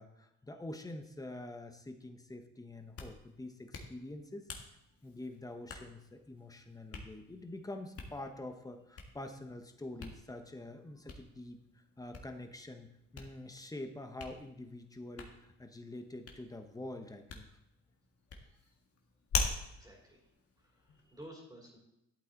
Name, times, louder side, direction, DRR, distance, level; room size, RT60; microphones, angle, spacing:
voice 1, 0.0-4.8 5.0-12.9 13.1-17.5, left 1 dB, 10° left, 6 dB, 1.3 m, -46 dB
Hands, 2.7-21.2, left 4 dB, 50° left, 1.8 m, -45 dB
voice 2, 18.3-18.7 19.7-20.3 20.6-21.8, right 1 dB, 10° right, -3 dB, 3.2 m, -54 dB
12.0 x 8.4 x 4.0 m, 0.84 s
cardioid pair, 90°, 30 cm